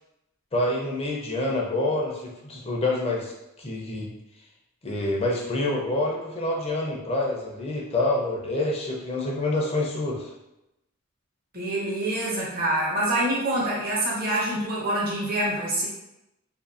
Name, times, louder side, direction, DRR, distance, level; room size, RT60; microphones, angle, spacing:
voice 1, 0.5-3.3 3.6-4.1 4.8-10.3, left 2 dB, 30° left, -2 dB, 0.5 m, -27 dB
voice 2, 11.5-15.9, right 1 dB, 45° right, -5 dB, 0.8 m, -26 dB
2.6 x 2.6 x 2.5 m, 0.90 s
head